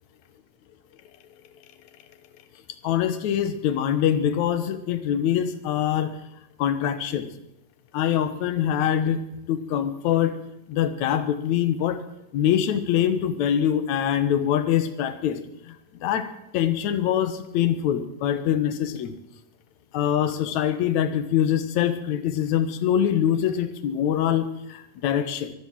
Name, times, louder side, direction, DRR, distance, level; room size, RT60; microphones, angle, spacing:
voice 1, 2.8-6.1 6.6-7.3 7.9-9.2 9.5-10.4 10.7-12.0 12.3-15.4 15.7-15.8 16.0-19.1 19.9-25.5, left 10 dB, 65° left, 11 dB, 2.2 m, -24 dB
23.0 x 8.1 x 7.5 m, 0.82 s
omnidirectional pair, 3.9 m